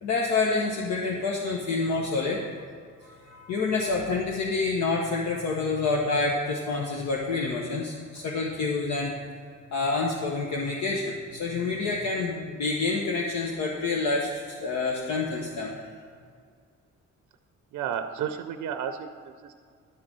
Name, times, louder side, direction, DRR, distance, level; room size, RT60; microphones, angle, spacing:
voice 1, 0.0-2.4 3.0-9.1 9.7-15.7, left 3 dB, 65° left, -2 dB, 1.1 m, -28 dB
voice 2, 17.7-19.5, right 8 dB, 80° right, 7 dB, 0.6 m, -32 dB
11.0 x 3.9 x 7.5 m, 2.1 s
cardioid pair, 90°, 30 cm